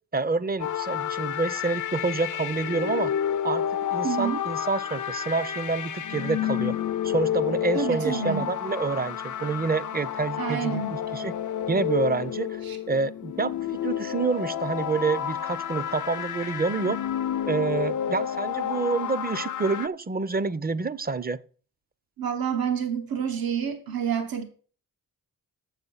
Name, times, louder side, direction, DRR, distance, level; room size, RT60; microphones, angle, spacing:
voice 1, 0.1-3.1 3.4-6.8 7.0-11.3 11.7-12.6 12.9-13.5 13.8-17.0 17.5-21.4, right 4 dB, 25° right, 0.6 m, -28 dB
sound 1, 0.6-19.9, left 10 dB, 55° left, 0.5 m, -30 dB
voice 2, 4.0-4.4 7.7-8.5 10.4-11.0 12.6-12.8 22.2-24.4, right 7 dB, 75° right, 1.3 m, -28 dB
7.5 x 7.2 x 5.5 m
cardioid pair, 70°, 36 cm